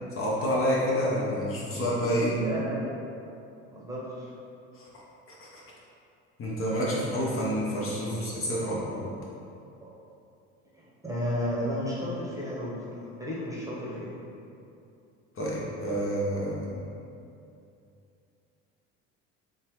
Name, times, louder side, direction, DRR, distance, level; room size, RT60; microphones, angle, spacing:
voice 1, 0.2-2.4 4.7-4.8 5.4-5.6 6.4-9.1 15.3-16.7, equal, 35° left, -5 dB, 0.8 m, -28 dB
voice 2, 2.3-3.0 3.7-4.3 9.8-9.9 10.7-14.2, equal, 10° right, -7 dB, 1.0 m, -33 dB
3.7 x 2.8 x 3.0 m, 2.6 s
supercardioid pair, 80°, 36 cm